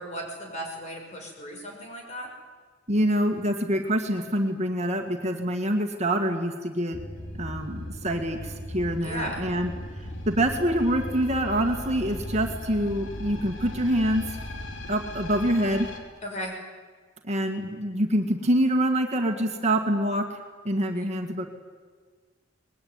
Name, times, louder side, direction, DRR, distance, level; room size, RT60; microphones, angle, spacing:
voice 1, 0.0-2.3 9.0-9.4 16.2-16.6, equal, 35° left, 1 dB, 6.3 m, -36 dB
voice 2, 2.9-7.0 7.4-9.7 10.0-14.4 14.9-15.9 17.2-20.4 20.6-21.5, right 1 dB, 35° right, 3 dB, 2.0 m, -26 dB
sound 1, 6.9-16.0, left 1 dB, 90° left, 3.5 m, -37 dB
24.0 x 21.0 x 9.6 m, 1.5 s
head